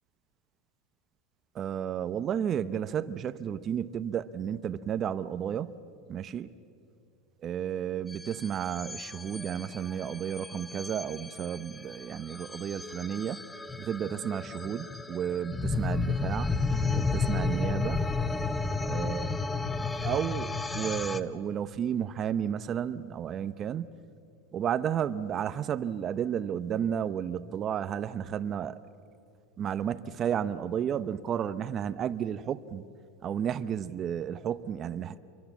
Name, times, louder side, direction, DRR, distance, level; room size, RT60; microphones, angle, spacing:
voice 1, 1.5-5.7 6.1-6.5 7.4-13.4 13.8-16.5 16.9-18.1 18.8-19.3 20.0-23.9 24.5-28.8 29.6-32.8 33.2-35.2, right 9 dB, 30° right, 12 dB, 0.8 m, -32 dB
sound 1, 8.1-21.2, left 3 dB, 10° left, 0.9 m, -32 dB
27.0 x 23.5 x 7.3 m, 2.5 s
supercardioid pair, 135°, 0 cm